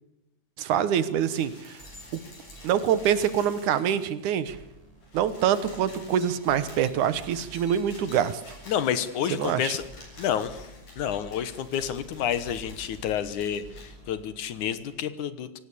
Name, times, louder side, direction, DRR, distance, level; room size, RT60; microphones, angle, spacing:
voice 1, 0.6-1.8 2.6-4.6 5.1-8.4 9.4-9.7, right 9 dB, 70° right, 15 dB, 2.5 m, -25 dB
sound 1, 0.9-4.3 4.6-4.7 4.9-13.9 14.9-15.0, left 1 dB, 55° left, 9.0 m, -50 dB
sound 2, 1.4-15.0, right 1 dB, 10° right, 5.4 m, -51 dB
voice 2, 8.7-9.8 10.2-10.7 11.0-15.6, left 9 dB, 70° left, 14 dB, 2.6 m, -29 dB
25.5 x 17.5 x 8.5 m, 0.88 s
omnidirectional pair, 3.7 m